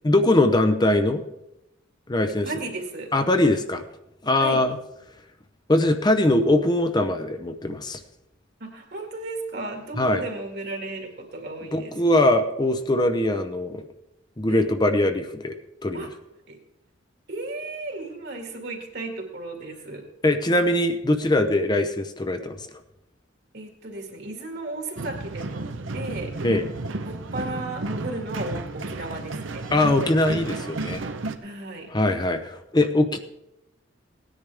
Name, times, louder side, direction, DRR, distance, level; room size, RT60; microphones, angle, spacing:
voice 1, 0.0-1.2 2.1-2.5 3.1-3.8 4.2-4.8 5.7-8.0 10.0-10.2 11.7-13.8 14.4-15.6 15.8-16.1 20.2-22.6 26.4-26.7 29.7-31.0 31.9-33.2, left 1 dB, 20° left, 7 dB, 0.7 m, -21 dB
voice 2, 2.4-3.1 4.4-4.6 8.6-12.4 14.5-14.6 15.9-16.1 16.5-16.6 17.3-20.1 23.5-25.6 25.9-26.3 27.0-29.6 31.4-31.9, right 2 dB, 60° right, 3 dB, 2.2 m, -34 dB
sound 1, 25.0-31.3, right 2 dB, 80° right, 0.8 m, -32 dB
18.0 x 10.0 x 3.5 m, 0.88 s
head